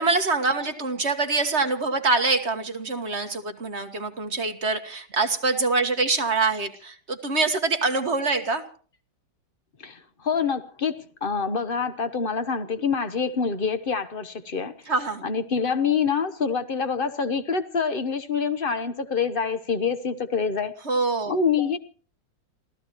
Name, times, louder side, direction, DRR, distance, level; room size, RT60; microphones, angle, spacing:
voice 1, 0.0-8.6 14.9-15.2 20.8-21.4, right 3 dB, 35° right, 6 dB, 1.7 m, -25 dB
voice 2, 9.8-20.8 21.3-21.8, left 5 dB, 35° left, 10 dB, 1.0 m, -26 dB
28.5 x 16.0 x 3.1 m, 0.41 s
omnidirectional pair, 2.1 m